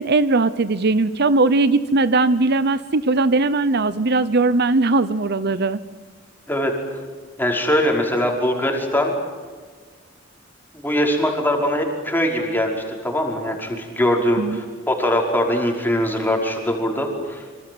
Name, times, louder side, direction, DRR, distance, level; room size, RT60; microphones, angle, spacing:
voice 1, 0.0-5.8 14.4-14.6, right 3 dB, 55° right, 15 dB, 0.8 m, -19 dB
voice 2, 7.4-9.1 10.7-17.6, equal, 10° left, 1 dB, 5.5 m, -22 dB
27.0 x 26.0 x 8.0 m, 1.5 s
head